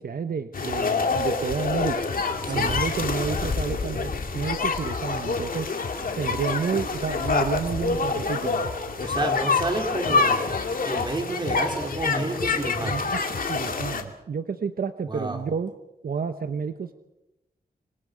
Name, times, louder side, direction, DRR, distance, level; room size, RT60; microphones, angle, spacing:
voice 1, 0.0-2.0 2.5-5.7 6.2-8.6 12.1-12.3 12.8-15.7 16.0-16.9, right 6 dB, 65° right, 8 dB, 1.1 m, -30 dB
sound 1, 0.5-14.0, left 4 dB, 60° left, 2.4 m, -26 dB
voice 2, 2.4-2.8 3.2-3.6 9.0-10.5 10.8-13.1 15.1-15.4, right 2 dB, 30° right, 3 dB, 3.8 m, -30 dB
26.5 x 25.0 x 5.2 m, 0.93 s
wide cardioid pair, 135°, 16 cm